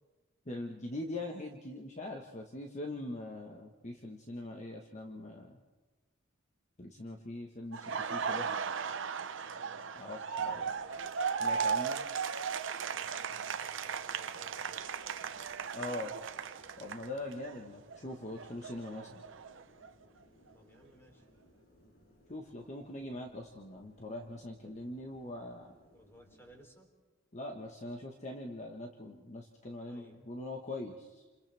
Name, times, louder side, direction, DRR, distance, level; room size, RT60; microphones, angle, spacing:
voice 1, 0.4-5.6 6.8-8.5 9.9-10.8 11.4-12.0 15.7-16.1 16.8-19.2 22.3-25.7 27.3-31.2, left 2 dB, 35° left, 1 dB, 1.4 m, -42 dB
Laughter, 7.7-17.6 17.9-19.9, right 6 dB, 65° right, 0.8 m, -36 dB
voice 2, 9.4-9.8 12.8-14.9 20.5-21.2 25.9-26.9 29.8-30.3, equal, 10° left, 2 dB, 3.5 m, -59 dB
sound 1, 10.4-26.7, equal, 75° left, 5.0 m, -65 dB
29.5 x 27.5 x 3.5 m, 1.3 s
head